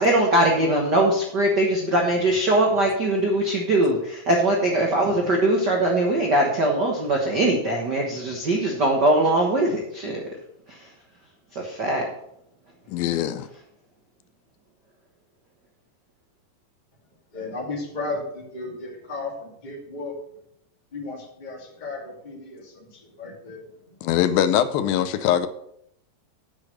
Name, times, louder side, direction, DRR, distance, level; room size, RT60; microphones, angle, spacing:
voice 1, 0.0-10.2 10.7-10.9 11.5-12.1, right 1 dB, 75° right, -1 dB, 0.9 m, -21 dB
voice 2, 12.9-13.5 24.0-25.5, left 10 dB, 85° left, 12 dB, 2.5 m, -22 dB
voice 3, 17.3-20.1 20.9-23.7, left 3 dB, 15° left, -3 dB, 2.1 m, -34 dB
8.6 x 6.6 x 6.3 m, 0.74 s
omnidirectional pair, 4.1 m